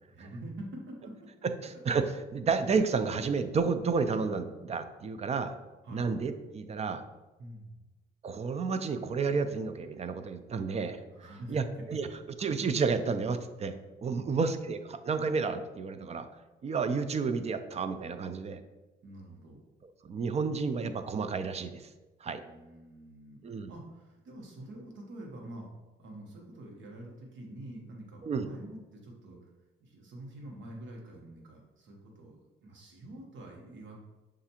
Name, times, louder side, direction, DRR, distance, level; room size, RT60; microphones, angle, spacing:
voice 1, 0.1-1.3 1.7-1.8 5.8-6.1 7.4-7.8 11.1-11.6 11.9-12.0 14.0-14.8 19.0-19.6 22.4-25.7 26.0-29.5 29.8-34.0, right 1 dB, 70° right, 0 dB, 1.1 m, -46 dB
voice 2, 1.6-5.5 5.9-7.0 8.2-11.0 11.5-11.6 11.9-12.1 12.4-13.7 14.0-16.3 16.6-18.6 20.0-21.9 22.2-22.4 23.4-23.7 28.2-28.5, right 5 dB, 35° right, 9 dB, 0.3 m, -31 dB
6.4 x 2.5 x 2.8 m, 1.1 s
cardioid pair, 90°, 20 cm